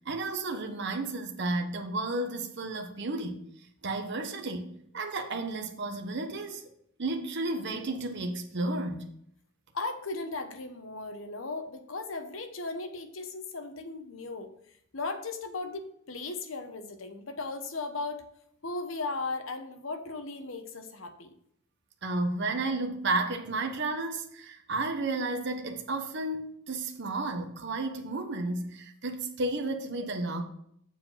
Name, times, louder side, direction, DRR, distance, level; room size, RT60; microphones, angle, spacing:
voice 1, 0.1-3.4 3.8-6.6 7.0-9.1 22.0-30.4, right 2 dB, 60° right, 0.9 m, -32 dB
voice 2, 9.7-14.5 14.9-18.2 18.6-21.3, left 3 dB, 75° left, 1.0 m, -37 dB
7.4 x 4.8 x 5.7 m
head